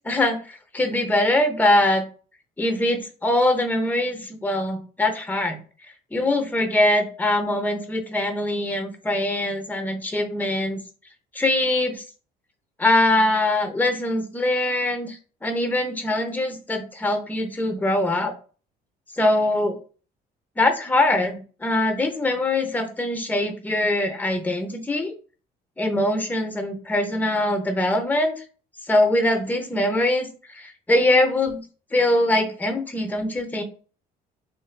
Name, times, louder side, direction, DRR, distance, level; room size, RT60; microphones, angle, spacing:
voice 1, 0.1-0.4 0.7-2.1 2.6-5.6 6.1-10.8 11.4-12.0 12.8-15.2 15.4-18.3 19.2-19.7 20.6-25.1 25.8-28.4 28.9-30.3 30.9-31.6 31.9-33.6, left 1 dB, 10° left, 6 dB, 0.6 m, -22 dB
3.1 x 2.2 x 3.2 m, 0.39 s
cardioid pair, 110°, 17 cm